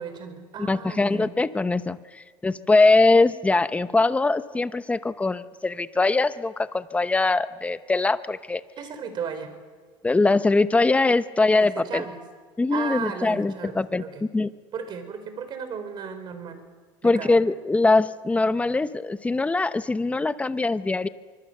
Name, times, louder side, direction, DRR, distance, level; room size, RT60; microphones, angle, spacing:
voice 1, 0.0-1.3 8.8-9.5 11.6-12.2 12.7-14.2 14.7-16.6 17.0-17.4, right 6 dB, 45° right, 9 dB, 4.4 m, -35 dB
voice 2, 0.6-8.6 10.0-12.0 12.6-14.0 14.3-14.5 17.0-21.1, left 3 dB, 15° left, 13 dB, 0.9 m, -22 dB
24.5 x 24.0 x 6.7 m, 1.5 s
supercardioid pair, 115°, 10 cm